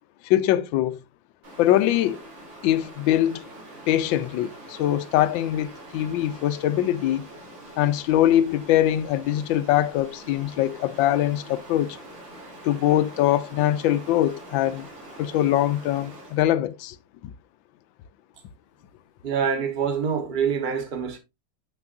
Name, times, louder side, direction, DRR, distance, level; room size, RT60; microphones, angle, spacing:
voice 1, 0.2-1.0 1.6-2.2 2.6-3.5 3.9-7.3 7.8-12.0 12.6-14.9 15.2-17.0 17.2-17.3, left 12 dB, 80° left, 1.3 m, -22 dB
Stream, 1.4-16.5, right 1 dB, 80° right, 3.8 m, -44 dB
voice 2, 19.2-21.2, right 7 dB, 30° right, 1.1 m, -25 dB
7.7 x 5.9 x 2.5 m
omnidirectional pair, 2.1 m